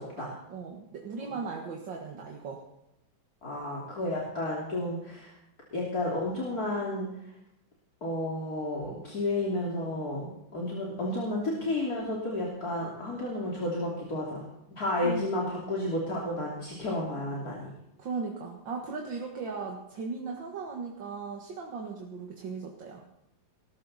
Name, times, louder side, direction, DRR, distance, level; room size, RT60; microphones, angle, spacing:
voice 1, 0.0-2.6 15.0-15.3 18.0-23.0, right 4 dB, 70° right, 0 dB, 2.4 m, -37 dB
voice 2, 3.4-5.4 5.7-7.1 8.0-14.4 14.8-17.7, left 1 dB, 50° left, -4 dB, 3.6 m, -32 dB
20.0 x 13.5 x 4.2 m, 0.84 s
omnidirectional pair, 2.1 m